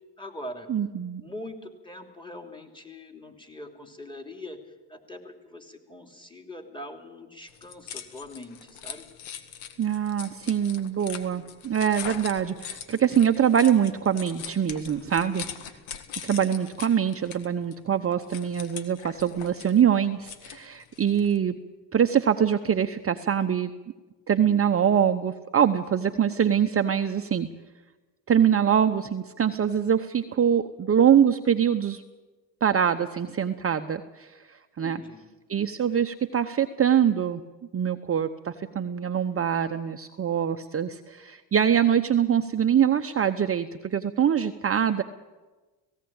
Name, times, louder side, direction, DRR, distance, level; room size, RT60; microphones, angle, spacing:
voice 1, 0.2-0.7 1.2-4.6 4.9-9.1 34.8-35.3, left 1 dB, 10° left, 4 dB, 3.1 m, -42 dB
voice 2, 0.7-1.2 9.8-15.5 16.2-21.6 21.9-23.7 24.3-27.5 28.3-32.0 32.6-35.0 35.5-37.4 37.7-45.0, right 8 dB, 30° right, 7 dB, 0.9 m, -24 dB
sound 1, 7.5-21.4, left 8 dB, 75° left, 1.9 m, -42 dB
17.5 x 17.0 x 8.9 m, 1.2 s
supercardioid pair, 85°, 47 cm